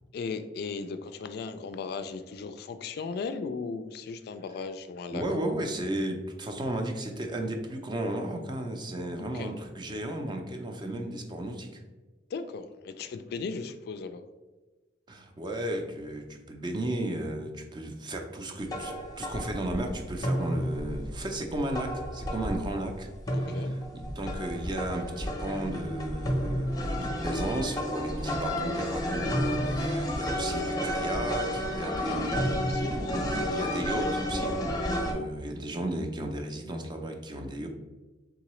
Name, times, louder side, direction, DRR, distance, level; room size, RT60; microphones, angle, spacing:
voice 1, 0.1-5.2 9.3-9.5 12.3-14.2 23.3-23.7 32.1-33.1, left 4 dB, 60° left, 10 dB, 0.3 m, -37 dB
voice 2, 5.1-11.8 15.1-34.5 34.9-37.7, right 1 dB, 25° right, 4 dB, 0.5 m, -34 dB
sound 1, 18.7-35.1, equal, 20° left, 0.6 m, -31 dB
3.7 x 3.7 x 3.0 m, 1.2 s
head